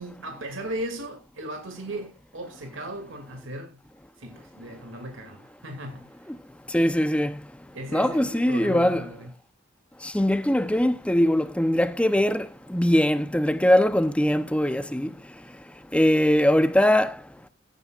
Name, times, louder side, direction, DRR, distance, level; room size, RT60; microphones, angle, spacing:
voice 1, 0.0-3.8 4.2-6.1 7.7-9.3, right 1 dB, 90° right, 2.5 m, -37 dB
voice 2, 6.7-7.3 7.9-9.0 10.1-15.1 15.9-17.1, left 1 dB, 5° left, 0.7 m, -21 dB
17.0 x 9.2 x 2.4 m
head